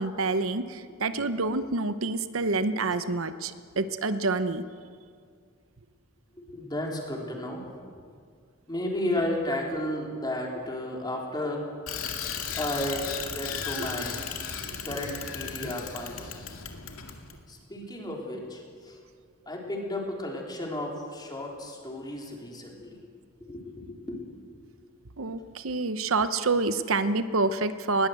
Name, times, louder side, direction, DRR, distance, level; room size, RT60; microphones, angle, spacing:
voice 1, 0.0-4.6 15.6-15.7 25.2-28.1, right 3 dB, 70° right, 11 dB, 0.9 m, -27 dB
voice 2, 6.3-7.7 8.7-11.7 12.6-14.2 14.8-16.3 17.5-19.0 19.5-23.0 23.4-24.2, left 1 dB, 20° left, 0 dB, 3.6 m, -33 dB
Bicycle, 11.9-17.4, left 7 dB, 85° left, 2.1 m, -35 dB
20.0 x 18.0 x 8.0 m, 2.1 s
head